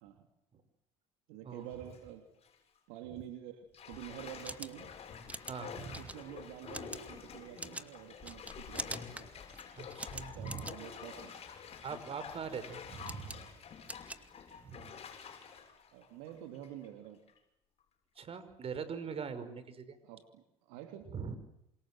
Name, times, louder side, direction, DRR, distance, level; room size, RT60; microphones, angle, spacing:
voice 1, 1.3-2.3 2.9-3.6 3.9-4.9 6.0-9.3 10.1-11.3 13.1-13.4 15.9-17.2 20.0-21.1, right 11 dB, 80° right, 6 dB, 3.2 m, -48 dB
Bathtub (filling or washing), 1.6-2.0 2.4-2.5 3.7-16.9 17.3-17.4, left 6 dB, 45° left, 7.8 m, -48 dB
sound 1, 4.2-14.9, right 2 dB, 10° right, 2.3 m, -47 dB
voice 2, 5.5-6.1 9.8-10.7 11.8-13.4 14.6-14.9 18.2-20.0 21.1-21.3, right 6 dB, 45° right, 12 dB, 5.6 m, -42 dB
28.5 x 27.0 x 7.7 m, 0.82 s
hypercardioid pair, 70°, 14 cm